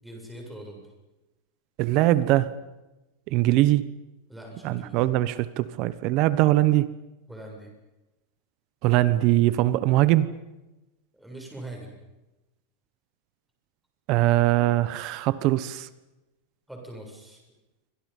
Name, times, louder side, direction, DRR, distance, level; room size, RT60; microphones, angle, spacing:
voice 1, 0.0-0.9 4.3-5.0 7.3-7.7 11.1-11.9 16.7-17.4, right 1 dB, ahead, 7.5 m, -42 dB
voice 2, 1.8-2.5 3.3-3.8 4.6-6.9 8.8-10.3 14.1-15.9, right 16 dB, 40° right, 1.1 m, -22 dB
29.5 x 25.0 x 5.5 m
supercardioid pair, 155°, 0 cm